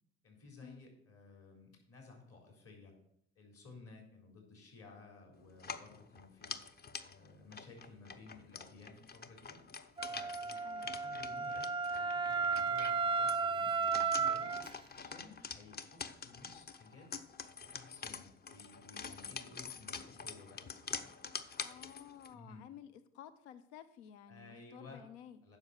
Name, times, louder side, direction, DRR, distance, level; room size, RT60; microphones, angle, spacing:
voice 1, 0.2-2.9 3.4-9.6 10.1-14.5 14.9-17.1 17.6-21.1 22.3-22.6 24.3-25.0 25.4-25.6, left 3 dB, 45° left, 1 dB, 3.7 m, -56 dB
sound 1, 5.5-22.3, left 5 dB, 30° left, 0.8 m, -46 dB
Wind instrument woodwind instrument, 10.0-14.7, right 5 dB, 15° right, 0.4 m, -34 dB
voice 2, 10.6-11.0 21.5-25.4, left 9 dB, 80° left, 14 dB, 0.7 m, -54 dB
9.6 x 5.7 x 6.5 m, 0.72 s
hypercardioid pair, 70°, 33 cm